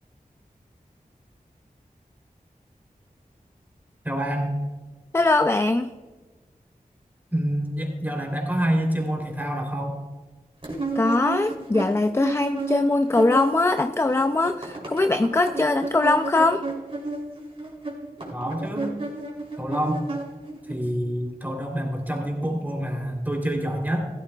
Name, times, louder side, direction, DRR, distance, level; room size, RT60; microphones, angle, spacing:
voice 1, 4.0-4.5 7.3-10.0 18.3-18.9 19.6-20.0 20.7-24.1, equal, 10° right, 1 dB, 3.1 m, -27 dB
voice 2, 5.1-5.9 11.0-16.6, left 2 dB, 15° left, 9 dB, 0.4 m, -21 dB
sound 1, 10.6-13.8 14.0-20.7, right 3 dB, 40° right, 3.0 m, -32 dB
15.5 x 13.5 x 2.3 m, 1.3 s
wide cardioid pair, 45°, 15 cm